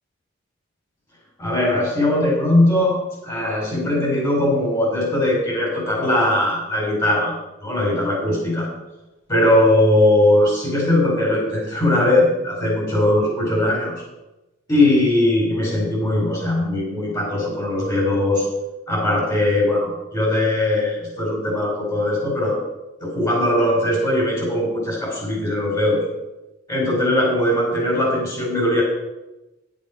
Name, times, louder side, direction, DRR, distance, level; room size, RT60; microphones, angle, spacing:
voice 1, 1.4-3.0 3.2-7.3 7.6-8.7 9.3-14.0 14.7-18.5 18.9-22.6 23.0-26.0 26.7-28.8, left 1 dB, 25° left, -4 dB, 4.3 m, -20 dB
10.5 x 9.1 x 5.0 m, 1.0 s
head